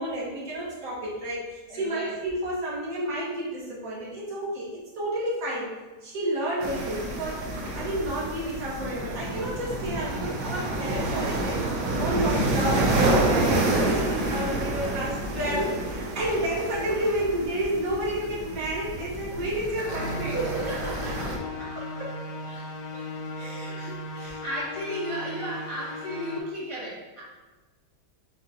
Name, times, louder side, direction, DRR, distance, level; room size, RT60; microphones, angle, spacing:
voice 1, 0.0-5.7 6.0-20.4 21.0-21.1 21.7-22.1 24.2-24.4, right 1 dB, 55° right, -6 dB, 1.7 m, -30 dB
voice 2, 1.7-2.2 14.3-14.9 20.2-21.7 22.5-22.6 22.9-23.0 23.4-27.2, right 1 dB, 30° left, -7 dB, 0.6 m, -35 dB
sound 1, 6.6-21.4, right 2 dB, 80° right, 1.4 m, -28 dB
sound 2, 19.8-26.4, left 1 dB, 70° left, 1.0 m, -37 dB
5.1 x 3.7 x 2.7 m, 1.2 s
omnidirectional pair, 1.8 m